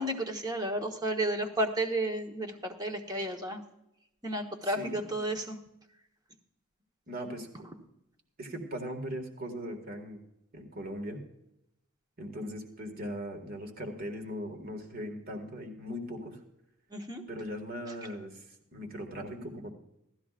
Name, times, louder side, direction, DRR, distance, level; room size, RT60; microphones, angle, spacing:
voice 1, 0.0-3.6 4.2-5.6 16.9-17.2, right 1 dB, 15° right, 3 dB, 1.2 m, -32 dB
voice 2, 4.6-5.1 7.1-7.5 8.4-10.2 10.5-11.2 12.2-16.4 17.3-18.4 18.7-19.7, equal, 40° right, 4 dB, 1.9 m, -39 dB
17.5 x 13.0 x 2.5 m, 0.83 s
head